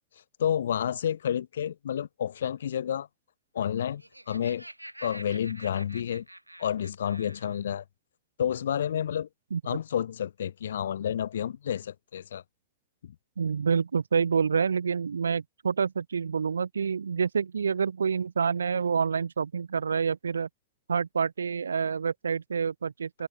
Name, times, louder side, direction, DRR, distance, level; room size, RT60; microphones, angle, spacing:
voice 1, 0.4-3.1 3.5-4.0 4.3-4.6 5.0-6.2 6.6-7.8 8.4-9.3 9.6-12.4 13.0-13.1, left 9 dB, 65° left, 1.8 m, -30 dB
Laughter, 3.8-7.6, right 1 dB, 85° right, 3.8 m, -47 dB
voice 2, 13.4-20.5 20.9-23.3, right 6 dB, 70° right, 1.4 m, -27 dB
open air
figure-of-eight pair, 90°, 0 cm